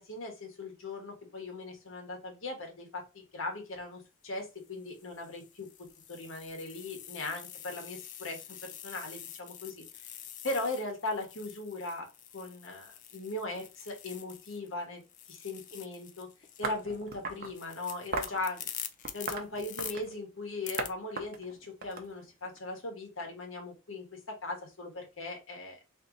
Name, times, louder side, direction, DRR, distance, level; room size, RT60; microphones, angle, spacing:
voice 1, 0.0-12.1 12.3-16.3 16.6-18.7 19.1-25.8, left 2 dB, 75° left, 3 dB, 1.3 m, -39 dB
sound 1, 3.6-3.8 4.6-14.7 15.0-19.9 20.6-20.9, left 10 dB, 40° left, 0.4 m, -46 dB
sound 2, 16.6-17.5 18.1-18.4 19.0-20.2 20.8-20.9 21.2-22.6, right 4 dB, 50° right, 0.7 m, -37 dB
3.1 x 3.0 x 3.8 m, 0.28 s
head